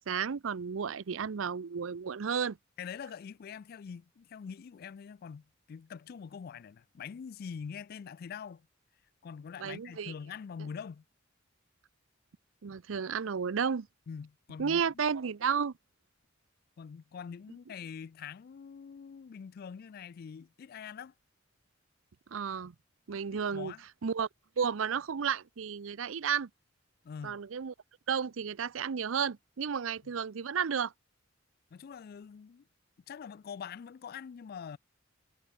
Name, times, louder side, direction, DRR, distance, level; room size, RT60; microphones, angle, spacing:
voice 1, 0.0-2.6 9.6-10.1 12.6-13.9 14.6-15.7 22.3-22.7 23.1-23.7 24.0-24.3 24.6-26.5 27.2-27.7 28.1-30.9, right 6 dB, 85° right, 0.6 m, -32 dB
voice 2, 2.8-8.7 9.2-11.0 14.1-15.0 16.8-21.1 23.3-23.8 27.0-27.4 31.7-32.6 33.1-34.8, left 6 dB, 50° left, 0.3 m, -44 dB
head